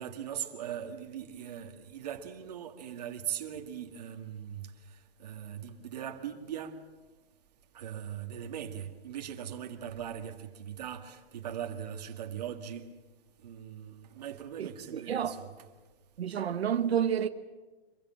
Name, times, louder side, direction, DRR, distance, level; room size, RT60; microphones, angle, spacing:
voice 1, 0.0-4.7 5.2-6.8 7.7-12.9 13.4-15.5, right 9 dB, 40° right, 2.0 m, -40 dB
voice 2, 14.6-15.4 16.2-17.3, right 8 dB, 85° right, 1.3 m, -30 dB
25.5 x 22.5 x 7.5 m
hypercardioid pair, 180°, 31 cm